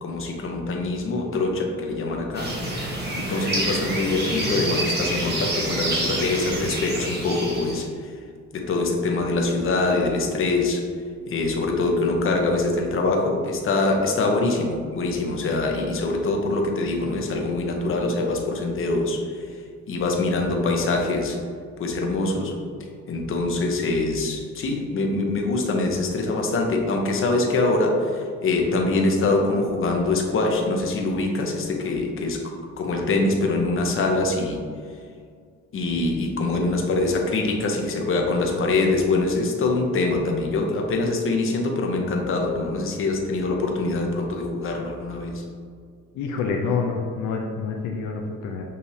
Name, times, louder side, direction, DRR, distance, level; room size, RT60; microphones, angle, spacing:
voice 1, 0.0-2.5 3.1-8.2 8.5-10.8 11.3-19.6 19.9-21.4 21.8-22.5 23.1-32.4 32.8-34.6 35.7-45.4, left 2 dB, 45° left, 1 dB, 0.8 m, -24 dB
sound 1, 2.3-7.8, right 1 dB, 35° right, 1.3 m, -27 dB
voice 2, 46.1-48.6, left 5 dB, 75° left, 1 dB, 0.5 m, -27 dB
6.4 x 2.7 x 2.7 m, 2.1 s
cardioid pair, 95°, 31 cm